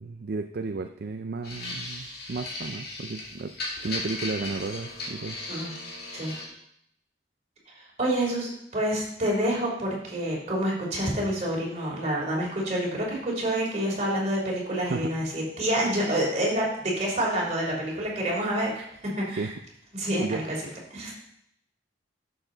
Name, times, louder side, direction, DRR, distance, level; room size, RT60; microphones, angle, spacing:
voice 1, 0.0-3.5 3.8-5.4 14.9-15.1 19.3-19.6 20.2-20.4, right 3 dB, 60° right, 7 dB, 0.5 m, -33 dB
sound 1, 1.4-6.5, left 2 dB, 60° left, 2.4 m, -36 dB
voice 2, 8.0-18.8 19.2-19.5 19.9-20.4 20.9-21.2, right 1 dB, 40° right, -3 dB, 3.3 m, -27 dB
11.5 x 6.9 x 3.9 m, 0.74 s
head